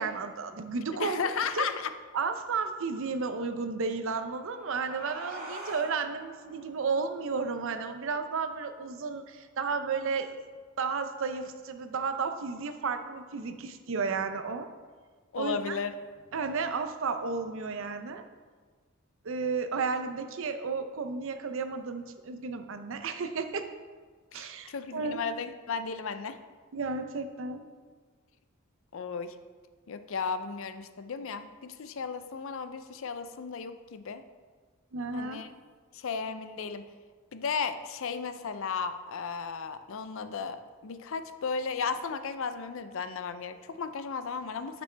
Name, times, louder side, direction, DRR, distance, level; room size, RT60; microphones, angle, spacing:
voice 1, 0.0-1.2 1.5-1.7 2.1-10.3 10.8-14.7 15.4-15.7 16.3-18.2 19.2-23.7 24.3-25.2 26.7-27.6 34.9-35.4, right 4 dB, 65° right, 8 dB, 0.6 m, -33 dB
voice 2, 1.0-1.9 15.3-15.9 24.3-26.4 28.9-29.4 29.9-34.2 35.1-35.5 35.9-36.8 37.3-44.8, left 5 dB, 65° left, 10 dB, 0.5 m, -35 dB
sound 1, 3.9-9.1, right 1 dB, 45° right, 2.3 m, -47 dB
10.0 x 6.1 x 3.3 m, 1.5 s
head